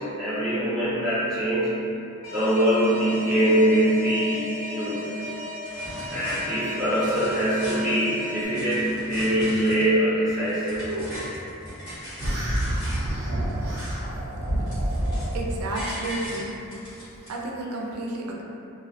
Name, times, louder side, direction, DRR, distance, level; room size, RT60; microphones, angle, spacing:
voice 1, 0.0-1.8 2.3-5.1 5.8-11.2, right 1 dB, ahead, -16 dB, 0.5 m, -23 dB
Alarm, 2.2-8.5, left 1 dB, 85° left, 0.5 m, -36 dB
sound 1, 5.2-5.3 5.6-6.4 6.8-8.0 8.4-9.9 10.2-13.1 13.4-14.2 14.4-15.4 15.7-17.3, equal, 60° left, 0.9 m, -39 dB
sound 2, 12.2-15.6, right 1 dB, 45° right, 0.7 m, -27 dB
voice 2, 15.3-16.5 17.3-18.4, right 1 dB, 85° right, -1 dB, 0.4 m, -31 dB
2.3 x 2.0 x 2.6 m, 2.7 s
head